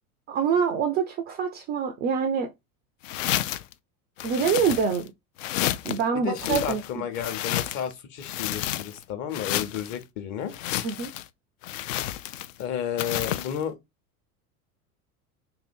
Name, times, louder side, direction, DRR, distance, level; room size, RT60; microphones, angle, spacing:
voice 1, 0.3-2.5 4.2-5.1 5.8-7.0 10.8-11.1, right 6 dB, 25° right, 0.3 m, -25 dB
sound 1, 3.0-3.7 4.2-5.1 5.4-6.0 6.3-7.9 8.2-9.0 9.3-10.0 10.5-11.3 11.6-12.6 13.0-13.6, left 13 dB, 60° left, 0.5 m, -30 dB
voice 2, 6.2-10.5 12.6-13.7, left 9 dB, 40° left, 1.0 m, -32 dB
2.8 x 2.7 x 4.2 m
figure-of-eight pair, 80°, 45 cm